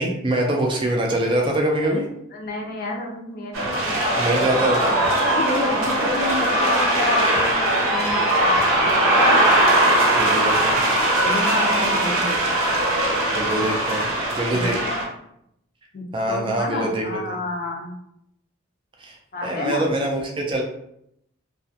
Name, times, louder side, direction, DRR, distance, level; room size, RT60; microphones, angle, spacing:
voice 1, 0.0-2.1 4.2-4.9 10.1-10.8 13.3-14.1 14.4-14.8 16.1-17.4 19.0-20.6, right 1 dB, 25° right, 0 dB, 0.3 m, -24 dB
voice 2, 2.3-5.0 5.3-9.4 11.2-12.7 14.5-15.0 15.9-17.9 19.3-19.8, left 2 dB, 45° left, 0 dB, 0.5 m, -29 dB
sound 1, 3.5-15.1, right 1 dB, 85° right, 0.6 m, -20 dB
2.3 x 2.1 x 2.6 m, 0.76 s
head